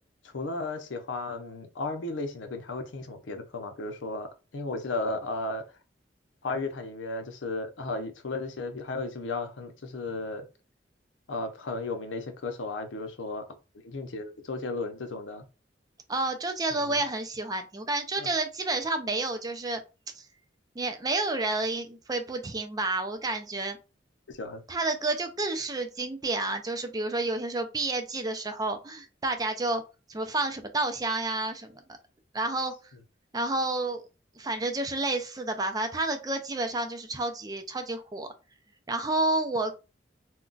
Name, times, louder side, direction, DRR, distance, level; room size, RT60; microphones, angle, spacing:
voice 1, 0.2-5.6 6.4-10.4 11.3-13.5 13.8-15.4 16.8-17.0 18.2-18.3 24.3-24.6, left 2 dB, 85° left, 0.6 m, -34 dB
voice 2, 16.1-19.8 20.2-20.3 20.8-23.8 24.7-29.8 30.1-31.8 32.3-32.7 33.3-34.0 34.4-38.3 38.9-39.7, right 2 dB, 20° right, 0.4 m, -30 dB
2.3 x 2.2 x 3.8 m
head